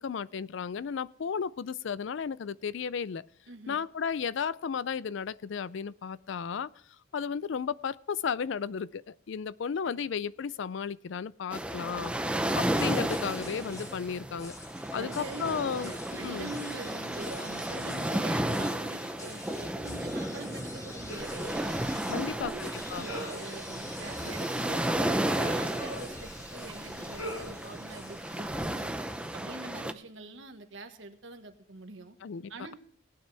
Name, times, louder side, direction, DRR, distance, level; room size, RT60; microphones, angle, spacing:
voice 1, 0.0-3.3 3.7-6.7 7.1-12.1 12.6-14.6 14.9-16.5 22.1-23.1 32.2-32.7, left 6 dB, 60° left, 19 dB, 0.4 m, -34 dB
voice 2, 3.5-3.8 14.9-15.5 15.8-21.8 22.1-22.6 22.9-28.9 29.3-32.1 32.5-32.7, right 2 dB, 65° right, 7 dB, 1.4 m, -44 dB
sound 1, 11.5-29.9, right 1 dB, 5° right, 0.5 m, -33 dB
sound 2, 12.6-29.5, left 2 dB, 15° left, 1.2 m, -47 dB
sound 3, 21.1-28.9, right 1 dB, 80° left, 6.2 m, -45 dB
18.0 x 9.4 x 3.3 m, 0.65 s
head